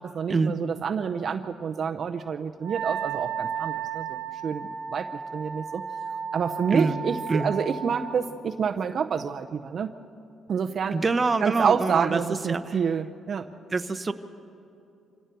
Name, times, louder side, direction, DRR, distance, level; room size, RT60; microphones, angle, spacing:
voice 1, 0.0-5.1 5.3-5.8 6.3-9.9 10.5-11.0 11.4-13.5, right 6 dB, 55° right, 7 dB, 0.7 m, -28 dB
Wind instrument woodwind instrument, 2.6-8.2, right 7 dB, 90° right, 1.1 m, -34 dB
voice 2, 10.9-12.2 12.5-12.8 13.7-14.1, right 4 dB, 30° right, 8 dB, 0.9 m, -25 dB
26.0 x 16.5 x 6.8 m, 2.7 s
cardioid pair, 90°, 0 cm